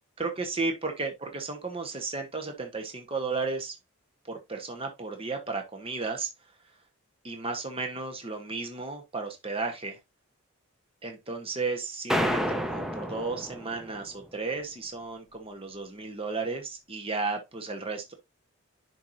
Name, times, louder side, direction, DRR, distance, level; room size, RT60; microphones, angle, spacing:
voice 1, 0.2-3.7 4.3-6.3 7.2-10.0 11.0-18.1, right 3 dB, 25° right, 1.2 m, -34 dB
sound 1, 12.1-14.1, equal, ahead, 0.6 m, -29 dB
10.5 x 4.6 x 2.6 m
head